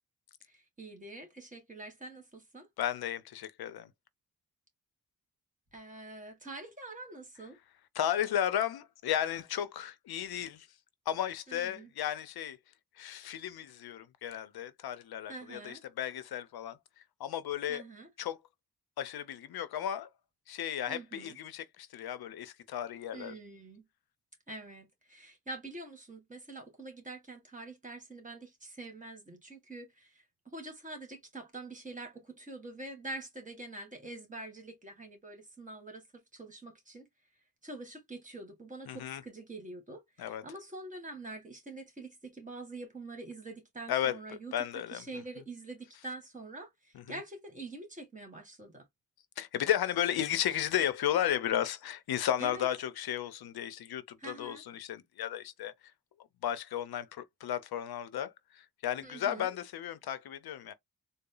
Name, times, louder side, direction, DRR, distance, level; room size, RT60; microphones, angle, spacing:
voice 1, 0.4-2.7 5.7-7.6 11.5-11.9 15.3-15.8 17.7-18.1 20.9-21.4 23.1-23.8 24.5-37.1 37.6-44.5 44.9-48.8 52.4-52.7 54.2-54.6 59.0-59.6, right 2 dB, 20° right, 1.7 m, -45 dB
voice 2, 2.8-3.9 8.0-10.7 11.1-12.6 13.0-16.8 17.2-17.8 18.2-18.4 19.0-20.1 20.5-23.3 38.9-39.2 40.2-40.4 43.9-44.2 44.5-45.0 46.9-47.2 49.4-55.7 56.4-60.7, left 10 dB, 85° left, 0.6 m, -34 dB
3.9 x 2.1 x 3.8 m
wide cardioid pair, 115°, 36 cm